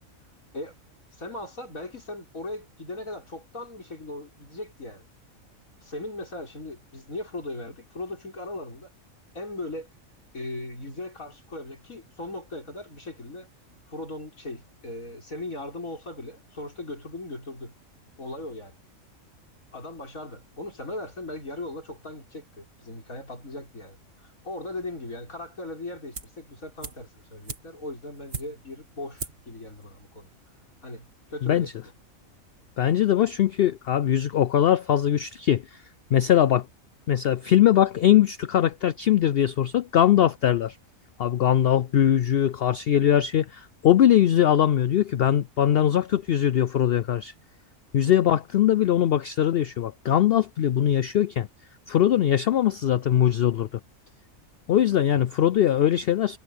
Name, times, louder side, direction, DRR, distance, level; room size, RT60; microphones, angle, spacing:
voice 1, 1.1-5.0 5.8-8.9 9.3-9.9 10.3-13.5 13.9-17.7 18.2-18.8 19.7-30.3 30.8-31.9, left 2 dB, 85° left, 6.4 m, -38 dB
sound 1, 26.1-26.5 26.8-28.8 29.2-29.5 29.8-29.9, right 4 dB, 50° right, 2.3 m, -39 dB
voice 2, 32.8-35.6 36.1-36.7 37.1-40.8 41.2-47.3 47.9-51.5 51.9-53.7 54.7-56.4, left 11 dB, 65° left, 0.6 m, -21 dB
omnidirectional pair, 1.4 m